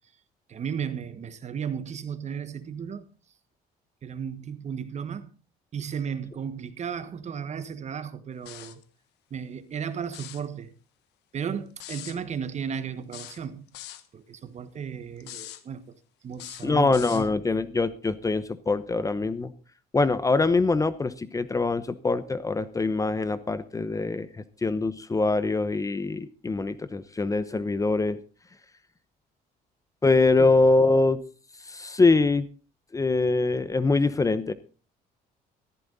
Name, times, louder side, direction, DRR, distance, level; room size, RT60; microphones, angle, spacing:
voice 1, 0.5-3.1 4.0-5.3 5.7-8.8 9.3-10.7 11.3-13.6 14.1-16.0 16.2-17.2 30.4-30.6, right 7 dB, 40° right, 1.5 m, -34 dB
sound 1, 8.5-8.8 10.0-10.5 11.8-12.2 13.1-14.1 15.2-15.6 16.3-17.3, left 14 dB, 85° left, 1.2 m, -42 dB
voice 2, 16.6-19.5 19.9-24.3 24.6-28.2 30.0-31.2 31.7-32.5 32.9-34.5, left 3 dB, 20° left, 0.9 m, -23 dB
15.0 x 14.0 x 4.1 m
cardioid pair, 110°, 17 cm